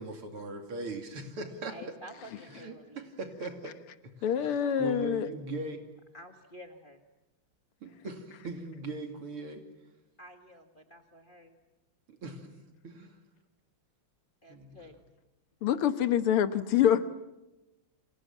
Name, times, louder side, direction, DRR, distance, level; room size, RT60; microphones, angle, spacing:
voice 1, 0.0-1.8 2.5-3.7 4.0-4.3 4.8-5.8 7.8-9.6 12.1-12.5 12.8-13.2 14.5-14.9, right 2 dB, 80° right, 5 dB, 3.5 m, -40 dB
voice 2, 1.7-3.1 6.1-7.0 10.2-11.6 14.4-15.0, equal, 25° left, 4 dB, 1.8 m, -50 dB
voice 3, 4.2-5.3 15.6-17.1, left 9 dB, 85° left, 11 dB, 2.2 m, -26 dB
29.5 x 26.0 x 7.3 m, 1.0 s
omnidirectional pair, 2.4 m